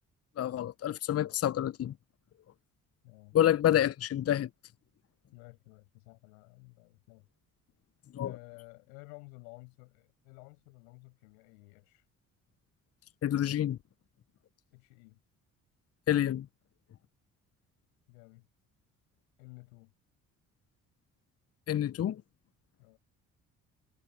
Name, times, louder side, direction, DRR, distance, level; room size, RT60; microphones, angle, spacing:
voice 1, 0.4-1.9 3.3-4.5 8.1-8.4 13.2-13.8 16.1-16.5 21.7-22.2, left 11 dB, 35° left, 0.8 m, -28 dB
voice 2, 3.0-3.4 5.3-7.3 8.2-12.1 14.7-15.2 18.1-18.5 19.4-19.9 22.8-23.0, left 33 dB, 70° left, 7.8 m, -53 dB
figure-of-eight pair, 45°, 42 cm